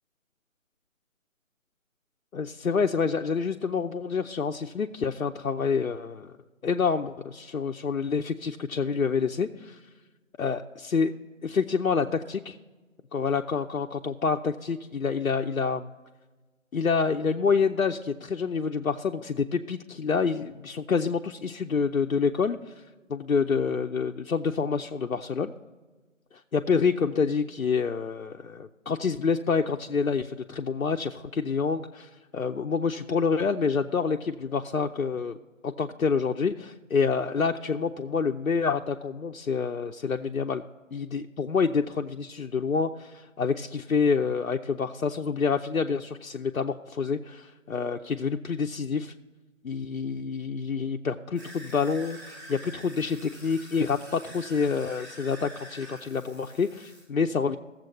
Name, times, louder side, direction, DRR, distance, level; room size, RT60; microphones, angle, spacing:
voice 1, 2.3-6.3 6.6-9.8 10.4-11.1 11.4-12.6 13.1-15.9 16.7-22.7 23.1-25.5 26.5-35.4 35.6-40.6 40.9-49.1 49.6-57.6, left 5 dB, 80° left, 3 dB, 0.7 m, -27 dB
sound 1, 51.3-57.0, right 1 dB, 15° right, 3.0 m, -46 dB
15.0 x 7.5 x 5.3 m, 1.3 s
figure-of-eight pair, 170°, 41 cm